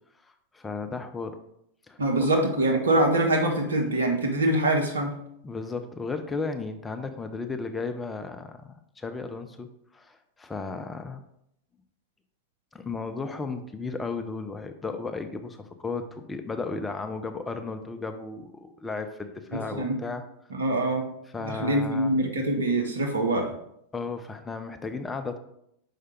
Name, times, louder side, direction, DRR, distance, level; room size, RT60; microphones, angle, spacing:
voice 1, 0.2-1.4 1.9-2.3 5.4-9.7 9.9-11.2 12.7-20.2 21.3-22.1 23.9-25.4, left 4 dB, 15° left, 7 dB, 0.5 m, -34 dB
voice 2, 2.0-5.1 19.7-20.0 20.5-21.1 21.4-23.5, right 1 dB, 70° right, 2 dB, 1.2 m, -24 dB
5.6 x 4.9 x 4.4 m, 0.76 s
figure-of-eight pair, 90°, 0 cm